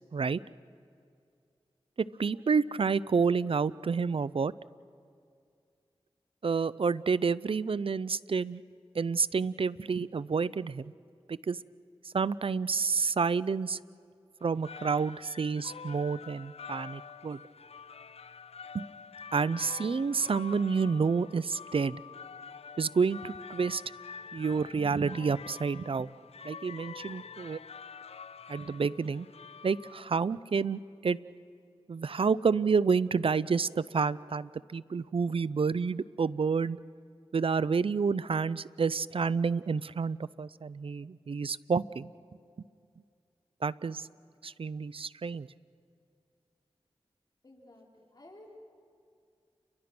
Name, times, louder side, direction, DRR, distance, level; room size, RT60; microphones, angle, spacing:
voice 1, 2.2-4.5 6.4-8.6 8.9-10.9 11.3-11.6 12.1-13.8 14.4-17.4 18.7-18.8 19.3-22.0 22.8-23.8 24.3-26.1 26.4-27.6 28.5-29.3 29.6-31.2 31.9-36.8 37.3-42.1 43.6-44.1 44.4-45.5, right 5 dB, 60° right, 19 dB, 0.5 m, -29 dB
sound 1, 14.4-30.3, left 6 dB, 80° left, 0.5 m, -47 dB
voice 2, 47.4-48.6, left 1 dB, 40° left, -2 dB, 5.0 m, -54 dB
30.0 x 23.0 x 6.1 m, 2.3 s
cardioid pair, 40°, 10 cm